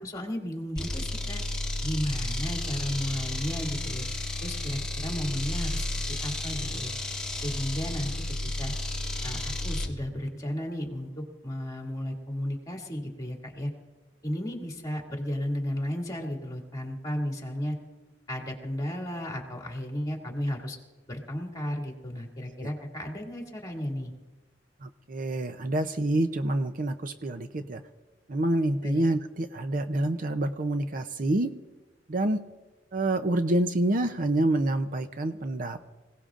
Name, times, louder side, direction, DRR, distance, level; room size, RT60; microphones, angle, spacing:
voice 1, 0.0-1.4 1.8-4.0 4.4-6.9 7.4-8.1 8.6-8.7 9.2-13.7 14.2-17.8 18.3-20.8 21.1-24.1 28.8-29.0, equal, 20° left, 0 dB, 2.4 m, -34 dB
sound 1, 0.8-10.0, left 1 dB, 5° left, 1.6 m, -32 dB
voice 2, 24.8-27.8 28.3-31.5 32.1-32.4 32.9-35.9, right 1 dB, 45° right, 9 dB, 0.6 m, -27 dB
26.0 x 17.5 x 2.5 m, 1.2 s
head